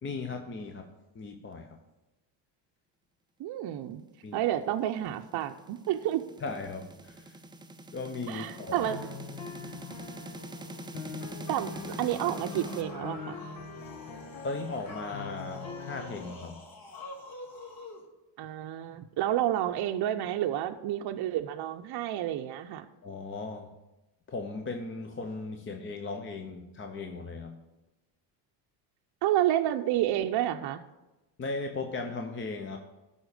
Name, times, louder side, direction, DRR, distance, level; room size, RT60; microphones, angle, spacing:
voice 1, 0.0-1.8 4.2-4.5 6.4-7.4 7.9-8.9 14.4-16.6 23.0-23.7 24.3-27.6 31.4-32.8, left 3 dB, 25° left, 5 dB, 0.7 m, -37 dB
voice 2, 3.4-4.0 4.3-6.2 8.3-9.0 11.5-13.4 18.4-22.9 29.2-30.8, right 12 dB, 50° right, 5 dB, 0.7 m, -30 dB
sound 1, 4.7-12.8, right 2 dB, 10° right, 0.5 m, -44 dB
sound 2, 8.3-16.2, left 4 dB, 65° left, 1.4 m, -43 dB
sound 3, 11.7-18.0, left 2 dB, 45° left, 2.0 m, -47 dB
11.5 x 4.3 x 6.5 m, 1.0 s
supercardioid pair, 95°, 50 cm